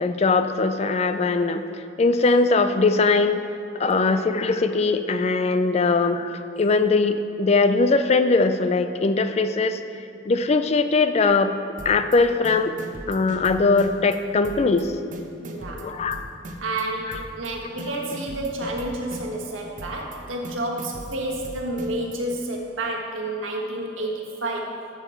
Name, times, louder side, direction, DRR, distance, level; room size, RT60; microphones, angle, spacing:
voice 1, 0.0-1.6 2.0-3.4 3.8-9.8 10.3-11.5 11.8-12.8 13.1-14.9 15.8-16.2 17.1-17.2, left 3 dB, 35° left, 10 dB, 0.4 m, -21 dB
voice 2, 4.0-4.3 5.8-6.0 15.4-15.9 16.6-24.8, right 1 dB, 85° right, -1 dB, 1.5 m, -30 dB
sound 1, 11.8-12.2 12.4-14.2 14.4-14.8 15.1-16.8 17.1-17.5 17.8-19.5 19.8-20.2 20.4-22.2, right 1 dB, 40° right, 0.8 m, -39 dB
12.0 x 7.1 x 4.4 m, 2.7 s
head